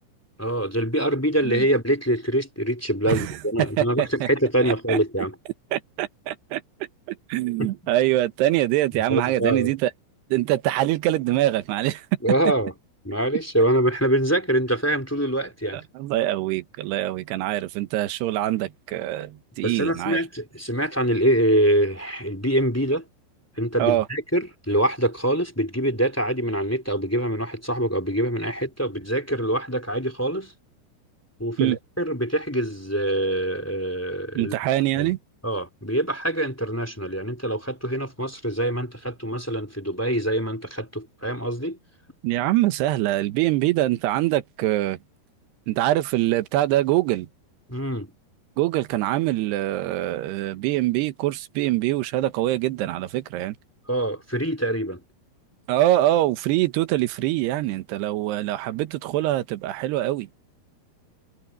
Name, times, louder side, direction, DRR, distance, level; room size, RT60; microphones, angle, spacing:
voice 1, 0.4-5.3 7.6-7.7 9.1-9.7 12.2-12.7 13.0-15.8 19.6-23.0 23.6-30.5 31.4-34.6 35.0-35.1 35.4-41.8 47.7-48.1 53.9-55.0, right 1 dB, 5° left, 3.0 m, -24 dB
voice 2, 3.6-4.3 4.6-5.0 5.7-6.6 7.1-9.9 10.3-12.1 15.7-20.2 23.8-24.1 31.6-31.8 34.4-35.2 42.2-45.0 45.7-47.3 48.6-53.6 55.7-60.3, right 15 dB, 85° right, 3.2 m, -24 dB
omnidirectional pair, 4.6 m